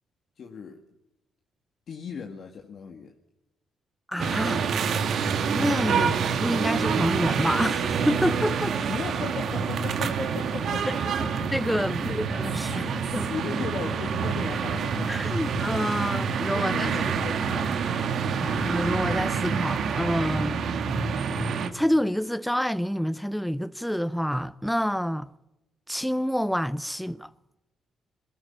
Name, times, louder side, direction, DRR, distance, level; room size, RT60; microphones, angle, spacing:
voice 1, 0.4-0.8 1.9-3.1 5.9-6.2 8.9-11.5 11.9-12.2 12.7-15.3 16.0-16.2 16.5-17.7 18.2-18.6, left 6 dB, 60° left, 2.0 m, -38 dB
voice 2, 4.1-4.7 5.5-6.1 6.4-8.8 11.5-12.9 13.1-13.3 15.1-17.1 18.4-20.6 21.7-25.3 25.9-27.3, equal, ahead, 0.7 m, -27 dB
sound 1, 4.2-21.7, right 6 dB, 65° right, 2.0 m, -27 dB
21.5 x 15.0 x 8.7 m
cardioid pair, 90°, 0 cm